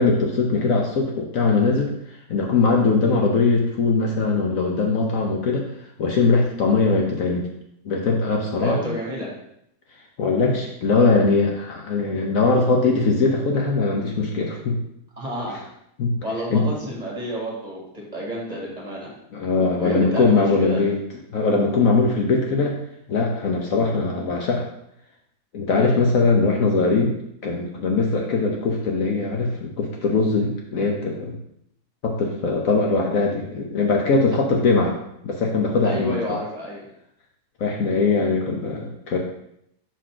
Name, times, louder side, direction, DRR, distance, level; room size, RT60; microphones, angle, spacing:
voice 1, 0.0-5.7 6.0-7.5 7.8-8.8 10.2-14.8 16.0-16.1 16.5-16.6 19.3-21.0 21.3-22.8 23.1-24.7 25.5-27.2 27.4-31.4 32.0-35.0 35.2-36.4 37.6-39.2, left 3 dB, 60° left, 0 dB, 1.1 m, -21 dB
voice 2, 8.6-9.3 15.2-15.6 16.2-19.1 19.8-20.8 25.7-26.0 35.8-36.8, equal, 25° right, -4 dB, 1.7 m, -30 dB
4.9 x 3.9 x 5.8 m, 0.76 s
omnidirectional pair, 1.8 m